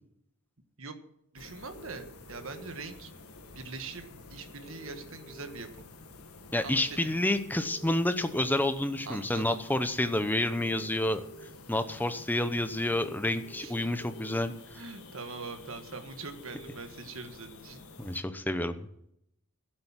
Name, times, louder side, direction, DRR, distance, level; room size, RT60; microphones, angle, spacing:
voice 1, 1.3-3.1 3.6-5.8 6.6-7.1 9.1-9.6 13.6-13.9 14.7-17.8, right 4 dB, 65° right, 8 dB, 1.6 m, -43 dB
sound 1, 1.4-18.2, left 3 dB, 85° left, 1.8 m, -51 dB
sound 2, 1.7-2.7 4.6-5.6 7.6-8.5 10.5-11.5 13.4-14.4 16.4-16.8, right 3 dB, 35° left, 1.9 m, -50 dB
voice 2, 6.5-11.2 11.7-14.5 18.0-18.9, left 1 dB, 10° left, 10 dB, 0.8 m, -29 dB
11.5 x 8.0 x 7.5 m, 0.75 s
head